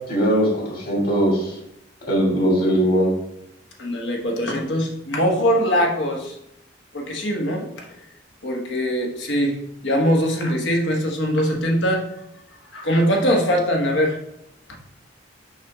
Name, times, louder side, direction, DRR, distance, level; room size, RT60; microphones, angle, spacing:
voice 1, 0.1-1.6 2.1-3.1, equal, 55° left, -2 dB, 2.8 m, -20 dB
voice 2, 3.8-6.4 6.9-7.7 8.4-9.6 9.8-12.1 12.7-14.2, equal, 80° left, 0 dB, 1.4 m, -21 dB
6.2 x 5.3 x 3.6 m, 0.78 s
head